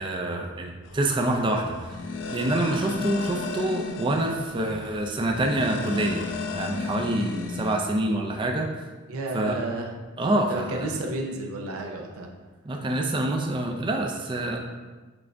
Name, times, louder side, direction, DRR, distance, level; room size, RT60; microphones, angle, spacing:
voice 1, 0.0-1.8 2.3-6.3 6.5-8.7 9.3-9.6 10.2-10.9 12.7-14.6, right 1 dB, 25° right, 1 dB, 0.4 m, -26 dB
sound 1, 0.8-7.8, left 4 dB, 60° left, 0.4 m, -35 dB
voice 2, 9.1-9.9 10.5-12.3, right 2 dB, 85° right, 1 dB, 0.6 m, -31 dB
5.9 x 2.5 x 3.3 m, 1.3 s
head